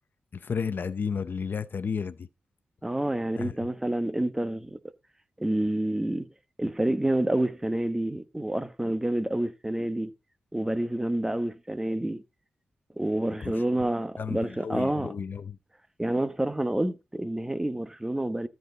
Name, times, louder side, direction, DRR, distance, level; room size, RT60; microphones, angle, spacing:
voice 1, 0.3-2.3 3.3-3.5 13.4-13.5 13.8-13.9 14.2-15.6, left 6 dB, 60° left, 0.6 m, -32 dB
voice 2, 2.8-4.8 5.4-6.3 6.6-10.1 10.5-12.2 13.0-15.1 16.0-18.5, right 1 dB, 10° right, 1.1 m, -28 dB
13.5 x 4.6 x 4.0 m
cardioid pair, 70°, 4 cm